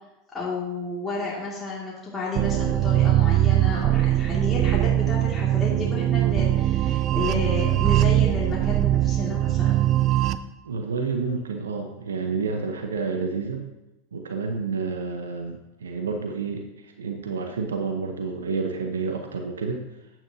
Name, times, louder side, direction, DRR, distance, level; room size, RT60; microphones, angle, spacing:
voice 1, 0.3-9.9, left 3 dB, 20° left, -5 dB, 2.2 m, -32 dB
sound 1, 2.4-10.4, right 14 dB, 45° right, 0.4 m, -21 dB
voice 2, 10.6-13.7 14.1-19.8, right 4 dB, 85° right, 4 dB, 0.8 m, -29 dB
8.9 x 8.9 x 2.7 m, 0.94 s
hypercardioid pair, 90°, 0 cm